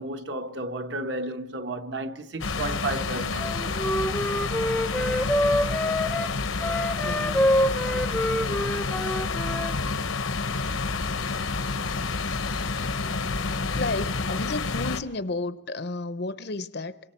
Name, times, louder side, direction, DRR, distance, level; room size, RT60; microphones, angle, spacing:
voice 1, 0.0-3.5, right 2 dB, 60° right, 1.2 m, -32 dB
sound 1, 2.4-15.0, left 4 dB, 80° left, 1.0 m, -29 dB
Wind instrument woodwind instrument, 3.4-9.8, left 1 dB, 5° left, 0.6 m, -26 dB
voice 2, 7.0-7.8 13.7-17.0, left 3 dB, 50° left, 0.7 m, -32 dB
27.5 x 24.5 x 4.4 m
head